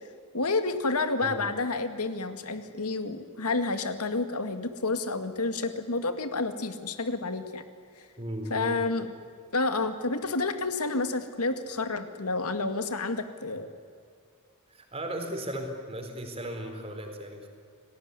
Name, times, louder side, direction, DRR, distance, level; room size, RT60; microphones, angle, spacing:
voice 1, 0.3-7.6 8.5-9.1 9.5-13.7, left 3 dB, 85° left, 8 dB, 2.1 m, -29 dB
voice 2, 8.2-8.8 14.7-17.5, right 1 dB, 25° right, 4 dB, 4.3 m, -36 dB
29.5 x 19.5 x 9.8 m, 2.2 s
head